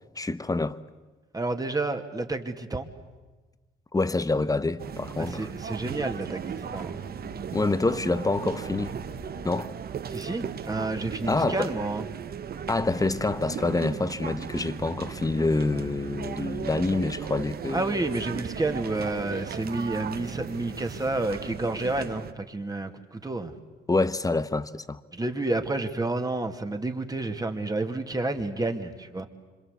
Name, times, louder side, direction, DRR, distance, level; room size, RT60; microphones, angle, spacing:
voice 1, 0.2-0.8 3.9-5.5 7.5-8.9 9.4-9.7 11.3-11.7 12.7-18.0 23.9-25.0, left 3 dB, 15° left, 1.1 m, -26 dB
voice 2, 1.3-2.9 5.2-7.0 10.1-12.0 17.7-23.5 25.1-29.3, right 2 dB, 20° right, 2.3 m, -30 dB
sound 1, 4.8-22.3, right 8 dB, 50° right, 1.0 m, -37 dB
sound 2, 6.5-10.1 10.4-12.1 12.4-18.0 18.5-19.7, left 2 dB, 40° left, 2.5 m, -48 dB
26.5 x 26.0 x 8.2 m
cardioid pair, 90°, 20 cm